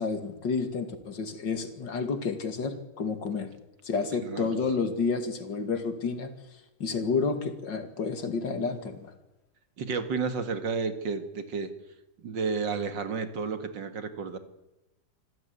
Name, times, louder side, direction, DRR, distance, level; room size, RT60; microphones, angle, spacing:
voice 1, 0.0-3.5 3.8-6.3 6.8-9.1, left 4 dB, 80° left, 8 dB, 2.9 m, -30 dB
voice 2, 4.2-4.6 9.8-11.7 12.2-14.4, right 5 dB, 80° right, 10 dB, 2.5 m, -31 dB
26.5 x 15.5 x 9.7 m, 1.0 s
omnidirectional pair, 1.9 m